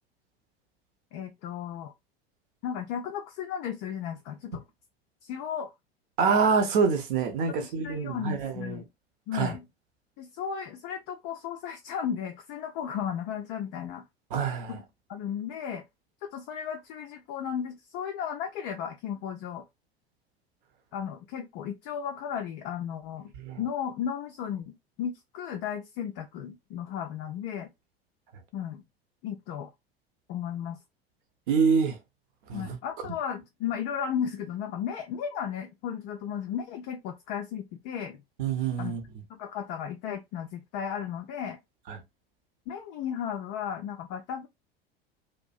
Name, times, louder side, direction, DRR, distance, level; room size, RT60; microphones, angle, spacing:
voice 1, 1.1-1.9 2.6-4.6 5.2-5.7 7.5-8.9 9.3-9.6 10.2-14.0 14.7-14.8 15.1-15.8 16.2-19.6 20.9-24.7 25.0-27.7 28.5-28.8 29.2-29.7 30.3-30.8 32.5-38.2 38.8-38.9 39.3-41.6 42.7-44.5, left 8 dB, 35° left, 0.4 m, -35 dB
voice 2, 6.2-8.8 9.3-9.5 14.3-14.8 23.3-23.6 31.5-32.0 32.5-32.8 38.4-39.0 41.9-42.0, right 5 dB, 55° right, 0.8 m, -26 dB
2.5 x 2.1 x 2.4 m
figure-of-eight pair, 80°, 31 cm